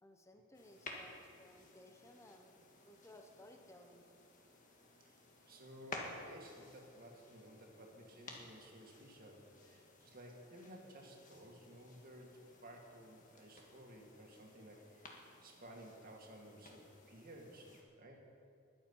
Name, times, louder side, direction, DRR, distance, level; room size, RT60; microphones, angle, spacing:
voice 1, 0.0-4.0, left 1 dB, 15° left, 4 dB, 1.0 m, -60 dB
sound 1, 0.5-17.8, left 2 dB, 40° left, 1.7 m, -55 dB
voice 2, 5.4-18.2, equal, 45° right, 0 dB, 2.2 m, -56 dB
21.0 x 7.7 x 5.6 m, 2.5 s
head